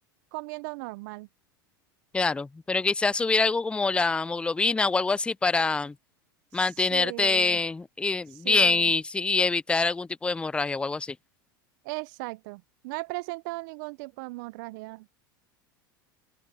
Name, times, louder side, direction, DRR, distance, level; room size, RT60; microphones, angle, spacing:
voice 1, 0.3-1.3 6.9-7.6 8.4-8.9 11.8-15.1, right 25 dB, 60° right, 1.3 m, -37 dB
voice 2, 2.1-5.9 6.5-11.1, left 3 dB, 10° left, 0.4 m, -25 dB
open air
hypercardioid pair, 85°, 12 cm